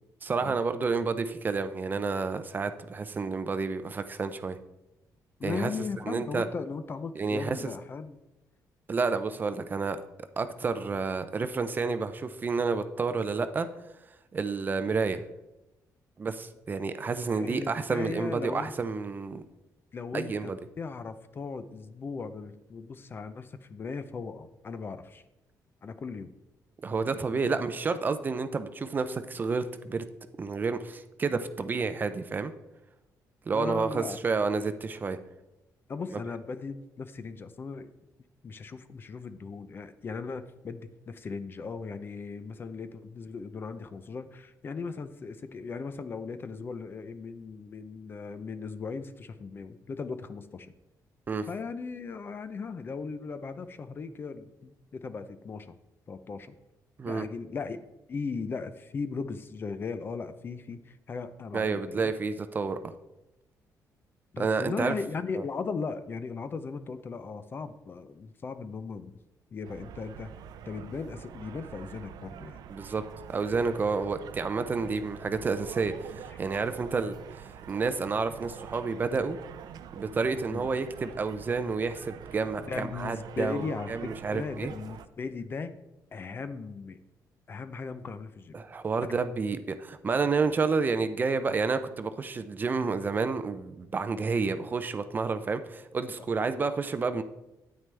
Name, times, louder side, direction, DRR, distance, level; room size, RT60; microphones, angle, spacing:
voice 1, 0.2-4.6 5.4-5.7 6.1-6.5 7.2-7.6 8.9-10.0 10.4-13.7 14.3-15.2 16.2-19.4 20.1-20.6 26.8-30.0 30.4-32.5 33.5-35.2 51.3-51.5 57.0-57.3 61.5-62.9 64.4-65.0 65.4-65.5 72.7-73.0 73.3-79.4 79.9-84.7 88.5-97.2, right 4 dB, 25° right, 10 dB, 0.5 m, -30 dB
voice 2, 5.4-8.2 17.3-18.7 19.9-20.5 20.8-25.2 25.8-26.3 26.9-27.2 27.5-27.6 33.5-34.2 35.9-37.9 38.4-50.7 51.5-55.7 56.1-56.6 57.1-57.8 58.1-62.1 64.3-69.1 69.5-70.3 70.7-72.6 80.5-80.6 82.6-85.7 86.1-87.0 87.5-88.6, left 4 dB, 30° left, 12 dB, 0.5 m, -37 dB
sound 1, 69.6-85.1, right 9 dB, 75° right, 0.5 m, -46 dB
9.3 x 9.1 x 3.3 m, 0.97 s
cardioid pair, 155°, 7 cm